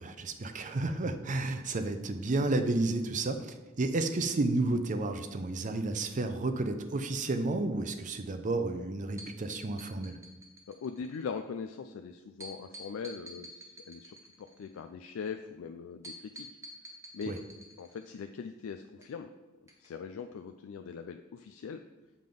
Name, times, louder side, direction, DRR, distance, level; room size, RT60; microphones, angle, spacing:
voice 1, 0.0-10.2 17.3-17.4, right 2 dB, 35° right, 8 dB, 0.5 m, -31 dB
sound 1, 9.2-11.2 12.4-14.8 16.0-18.2 19.0-19.1 19.7-19.9 20.2-20.3, equal, 15° right, 0.9 m, -48 dB
voice 2, 10.7-16.5 17.1-17.3 17.8-19.3 19.6-21.8, left 6 dB, 70° left, 7 dB, 0.3 m, -41 dB
7.7 x 3.7 x 5.1 m, 1.1 s
head